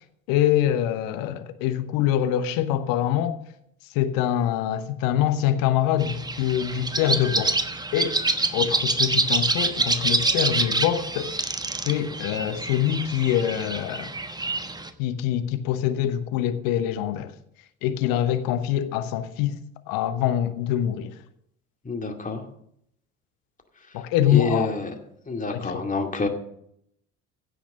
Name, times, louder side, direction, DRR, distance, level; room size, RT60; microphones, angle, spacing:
voice 1, 0.3-3.4 3.9-7.6 7.9-8.2 8.5-11.3 11.8-14.1 15.0-17.3 17.8-19.6 19.9-21.1 23.9-24.8 25.5-25.8, left 11 dB, 60° left, 1.1 m, -24 dB
sound 1, 6.0-14.9, right 2 dB, 10° right, 1.1 m, -26 dB
voice 2, 21.9-22.4 24.3-24.9 25.3-26.3, left 3 dB, 20° left, 2.3 m, -27 dB
16.0 x 6.5 x 6.4 m
figure-of-eight pair, 55°, 40 cm